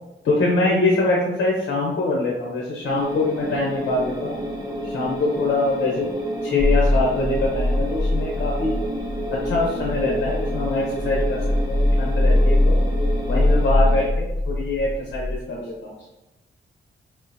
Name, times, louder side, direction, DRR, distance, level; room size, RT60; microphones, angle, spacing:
voice 1, 0.2-4.4 4.8-6.1 6.4-8.8 9.3-11.4 11.7-12.8 13.3-15.9, left 2 dB, 80° left, -3 dB, 0.8 m, -24 dB
sound 1, 2.8-14.1, equal, 20° right, 1.4 m, -30 dB
sound 2, 6.6-15.4, left 1 dB, 30° left, 1.1 m, -22 dB
4.7 x 3.6 x 2.7 m, 1.0 s
cardioid pair, 90°, 20 cm